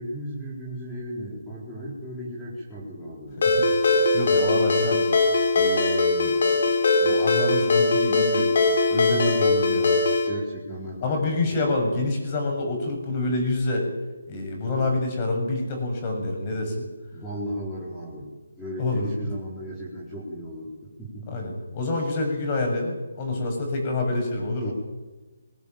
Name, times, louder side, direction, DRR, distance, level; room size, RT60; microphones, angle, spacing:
voice 1, 0.0-3.4 10.2-11.7 17.1-18.3 18.6-21.4 21.9-22.1 24.6-24.7, equal, 5° left, -7 dB, 4.6 m, -35 dB
Ringtone, 3.4-10.3, left 3 dB, 55° left, 4.7 m, -21 dB
voice 2, 3.4-3.7 4.1-5.1 5.5-6.6 7.0-8.5 8.9-10.1 11.0-13.9 14.3-16.8 18.8-19.1 21.3-24.7, left 2 dB, 25° left, 2 dB, 7.3 m, -27 dB
21.5 x 17.5 x 9.1 m, 1.1 s
hypercardioid pair, 165°, 0 cm